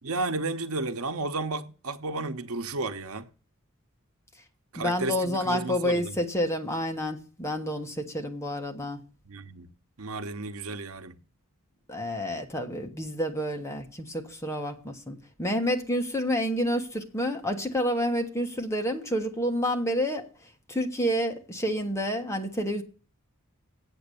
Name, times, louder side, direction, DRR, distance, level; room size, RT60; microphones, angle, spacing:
voice 1, 0.0-3.3 4.7-6.2 9.3-9.7 10.0-11.2, right 3 dB, 85° right, 1.0 m, -32 dB
voice 2, 4.8-9.0 11.9-20.3 20.7-22.8, equal, 15° left, 1.3 m, -29 dB
8.2 x 7.7 x 6.9 m
head